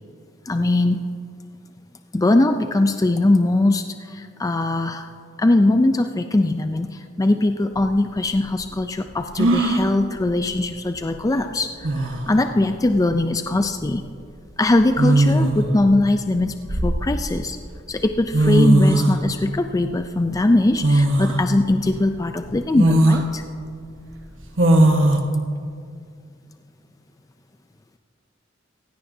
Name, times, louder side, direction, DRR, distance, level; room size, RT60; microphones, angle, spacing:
voice 1, 0.5-1.0 2.1-5.1 5.4-14.0 14.6-17.6 17.9-23.4, left 2 dB, 20° left, 7 dB, 0.4 m, -21 dB
sound 1, 7.8-7.9 9.4-9.9 11.4-11.5 11.8-12.3 13.7-13.9 15.0-15.7 16.4-17.4 18.1-18.2 18.3-19.2 20.8-21.4 21.9-22.0 22.7-23.2 24.6-25.2, right 1 dB, 85° right, 1.3 m, -18 dB
16.5 x 16.0 x 2.7 m, 2.3 s
head